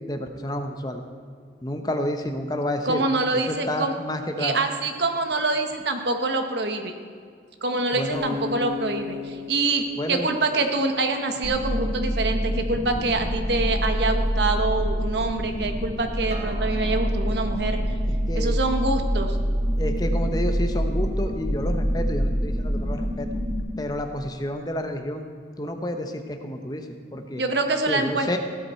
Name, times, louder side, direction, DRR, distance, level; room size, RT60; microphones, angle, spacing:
voice 1, 0.1-1.0 1.6-3.0 3.4-4.6 7.9-8.3 10.0-10.3 18.0-18.5 19.8-23.3 23.8-25.2 25.6-27.4 27.9-28.4, left 1 dB, 20° left, 5 dB, 0.9 m, -30 dB
voice 2, 2.8-3.9 4.4-6.9 7.6-17.8 18.3-19.4 27.4-28.4, right 3 dB, 70° right, 5 dB, 1.3 m, -25 dB
sound 1, 8.1-11.3, left 5 dB, 90° right, 1.8 m, -35 dB
sound 2, 11.4-23.6, equal, 35° left, 2.1 m, -26 dB
Acoustic guitar, 16.3-21.5, right 1 dB, 40° right, 2.0 m, -44 dB
16.0 x 12.5 x 4.5 m, 2.1 s
head